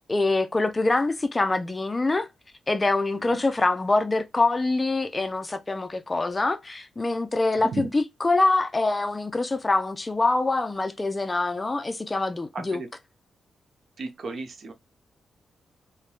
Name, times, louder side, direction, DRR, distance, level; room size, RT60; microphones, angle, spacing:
voice 1, 0.1-2.3 2.7-12.8, left 2 dB, 25° left, 0.4 m, -25 dB
voice 2, 7.5-7.9 12.5-12.9 14.0-14.7, right 3 dB, 65° right, 0.6 m, -34 dB
3.1 x 2.1 x 2.3 m
cardioid pair, 80°, 0 cm